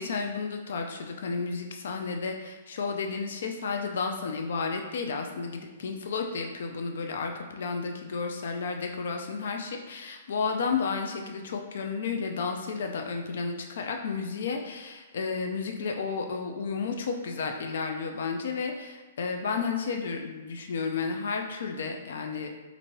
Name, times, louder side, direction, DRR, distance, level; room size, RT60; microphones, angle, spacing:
voice 1, 0.0-22.5, left 5 dB, 70° left, 4 dB, 0.4 m, -32 dB
4.4 x 2.6 x 2.9 m, 1.2 s
hypercardioid pair, 150°, 0 cm